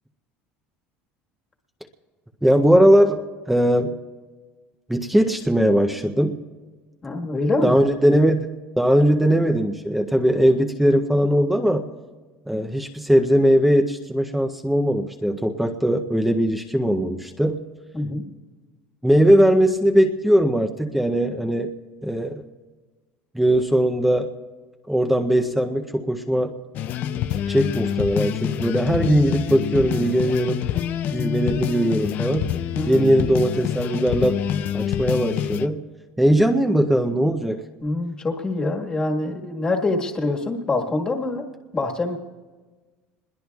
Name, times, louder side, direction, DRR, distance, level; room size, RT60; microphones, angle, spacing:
voice 1, 2.4-3.2 3.5-3.9 4.9-6.4 7.6-8.5 8.8-11.9 12.5-17.6 19.0-21.7 22.0-22.4 23.3-24.3 24.9-26.5 27.5-30.6 31.1-32.5 32.9-34.4 34.7-35.8 36.2-37.6, equal, 5° right, 4 dB, 0.6 m, -19 dB
voice 2, 7.0-7.8 17.9-18.2 32.7-33.1 37.8-41.4 41.7-42.2, left 2 dB, 20° left, 1 dB, 1.5 m, -25 dB
sound 1, 26.7-35.7, left 9 dB, 50° left, 0.5 m, -26 dB
26.0 x 21.0 x 2.3 m, 1.3 s
cardioid pair, 145°, 4 cm